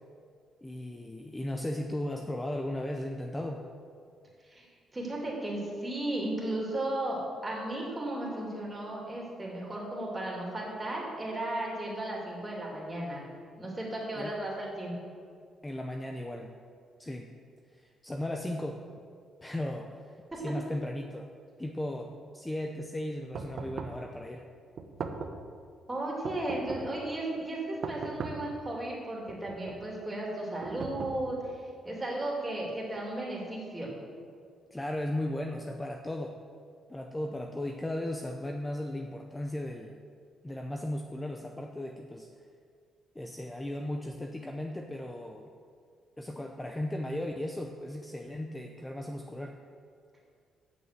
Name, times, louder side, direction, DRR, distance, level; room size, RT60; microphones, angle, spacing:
voice 1, 0.6-3.7 14.1-14.3 15.6-16.6 17.0-17.3 17.7-18.9 19.4-21.3 21.6-24.5 34.7-36.4 36.9-40.0 40.4-42.3 43.1-45.5 46.2-49.6, left 1 dB, 15° left, 3 dB, 0.7 m, -36 dB
voice 2, 4.9-13.2 13.6-15.0 20.3-20.4 25.9-31.6 31.8-33.9, right 1 dB, 15° right, -3 dB, 2.9 m, -35 dB
sound 1, 23.3-24.1 24.8-25.5 26.2-27.0 27.8-28.6 29.3-29.9 30.6-31.5, right 4 dB, 55° right, 0.9 m, -39 dB
8.2 x 6.3 x 7.7 m, 2.2 s
cardioid pair, 90°, 0 cm